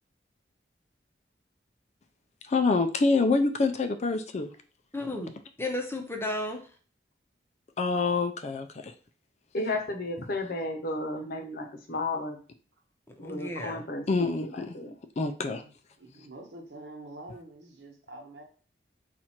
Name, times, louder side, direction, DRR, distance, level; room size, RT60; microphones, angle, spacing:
voice 1, 2.5-4.5 7.8-8.9 14.1-14.7 15.2-15.6, left 3 dB, 40° left, 0.4 m, -26 dB
voice 2, 4.9-5.3 5.6-6.6 13.2-13.8, left 1 dB, 15° left, 0.7 m, -33 dB
voice 3, 9.5-12.4 13.2-14.9, left 2 dB, 60° left, 0.8 m, -33 dB
voice 4, 15.6-18.4, right 2 dB, 75° right, 1.2 m, -47 dB
4.3 x 2.5 x 4.3 m
head